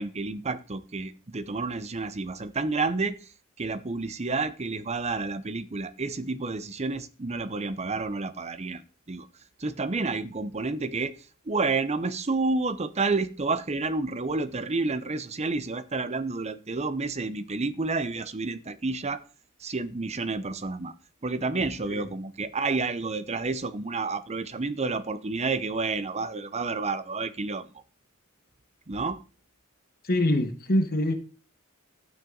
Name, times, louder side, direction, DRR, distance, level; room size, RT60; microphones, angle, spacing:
voice 1, 0.0-3.3 3.6-8.8 9.1-9.3 9.6-19.2 19.6-20.9 21.2-27.7 28.9-29.2, right 3 dB, 30° right, 0.8 m, -30 dB
voice 2, 30.0-31.1, left 1 dB, 45° left, 1.4 m, -24 dB
12.5 x 9.0 x 3.9 m
head